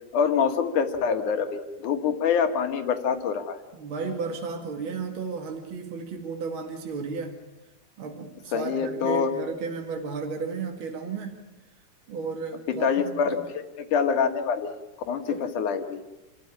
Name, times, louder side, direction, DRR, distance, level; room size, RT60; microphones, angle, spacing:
voice 1, 0.1-3.6 8.5-9.3 12.7-14.7 15.1-16.0, left 6 dB, 80° left, 6 dB, 3.2 m, -25 dB
voice 2, 3.8-7.4 8.0-11.4 12.1-13.4 15.3-15.5, right 4 dB, 45° right, 3 dB, 2.5 m, -33 dB
28.0 x 13.5 x 8.8 m, 1.0 s
omnidirectional pair, 3.5 m